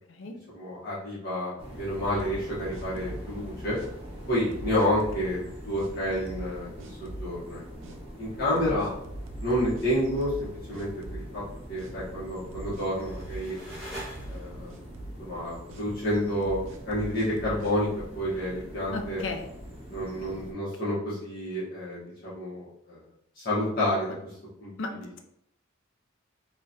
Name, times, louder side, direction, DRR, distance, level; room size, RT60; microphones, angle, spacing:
voice 1, 0.5-3.8 4.3-6.7 7.0-7.6 8.2-8.9 9.4-11.4 11.7-13.6 14.3-14.7 15.2-16.6 16.9-17.9 18.1-19.2 19.9-23.0 23.4-24.3 24.6-24.7 25.0-25.1, equal, 45° left, -9 dB, 1.1 m, -29 dB
sound 1, 1.6-20.5, equal, 25° right, 0.9 m, -43 dB
sound 2, 2.2-3.3 3.7-3.9 4.5-5.3 5.8-5.9 6.3-6.5 6.8-7.3 7.8-8.0 8.6-10.5 10.7-11.5 11.8-11.9 12.5-13.8 14.2-14.4 14.7-15.2 15.7-15.8 16.4-17.7, right 1 dB, 65° right, 0.4 m, -41 dB
sound 3, 12.4-14.8, equal, ahead, 1.3 m, -44 dB
voice 2, 18.9-19.5 24.8-24.9, left 3 dB, 60° left, 5 dB, 0.5 m, -33 dB
3.7 x 2.4 x 2.7 m, 0.74 s
head